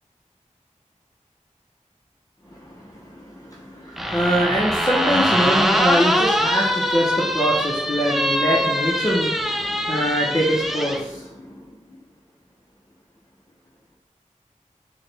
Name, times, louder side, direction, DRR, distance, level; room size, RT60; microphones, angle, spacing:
voice 1, 3.6-11.3, equal, 25° left, -4 dB, 0.7 m, -23 dB
sound 1, 4.0-11.0, equal, ahead, 0.3 m, -23 dB
4.7 x 2.2 x 3.2 m, 0.87 s
wide cardioid pair, 45°, 13 cm